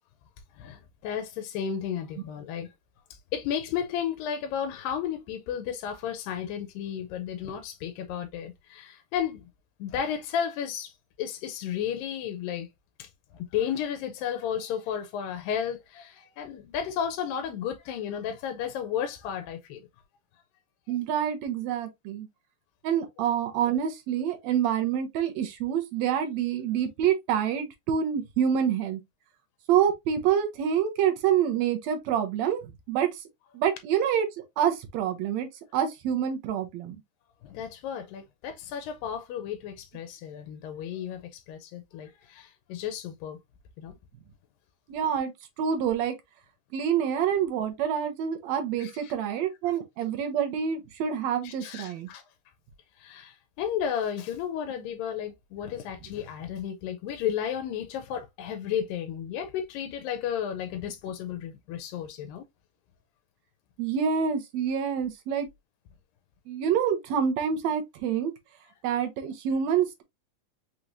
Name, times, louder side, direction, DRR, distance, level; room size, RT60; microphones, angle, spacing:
voice 1, 0.5-2.7 3.3-9.4 9.8-12.7 13.0-19.9 37.4-43.4 43.8-44.0 48.8-49.1 51.4-52.2 53.0-62.4, left 8 dB, 90° left, 2.4 m, -33 dB
voice 2, 20.9-22.3 22.8-29.0 29.7-32.6 32.9-33.2 33.5-34.3 34.6-37.0 44.9-45.3 45.6-46.2 46.7-52.1 63.8-65.5 66.5-68.3 68.8-70.0, right 8 dB, 70° right, 1.8 m, -27 dB
5.7 x 3.1 x 2.5 m
omnidirectional pair, 3.9 m